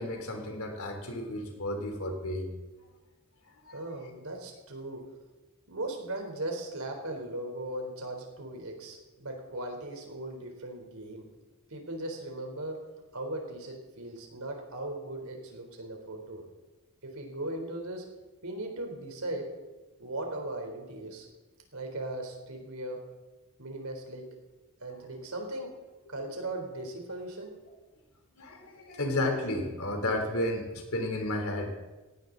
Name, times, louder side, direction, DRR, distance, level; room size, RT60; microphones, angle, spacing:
voice 1, 0.0-2.5 3.7-3.8 28.4-31.8, left 1 dB, 75° left, 3 dB, 3.5 m, -32 dB
voice 2, 3.7-5.0 5.7-11.3 11.7-12.8 13.1-16.4 17.0-18.0 18.4-19.5 20.0-21.3 21.7-23.0 23.6-24.3 24.8-25.7 26.1-27.5, right 1 dB, 75° right, 3 dB, 3.8 m, -38 dB
18.0 x 17.5 x 4.0 m, 1.2 s
head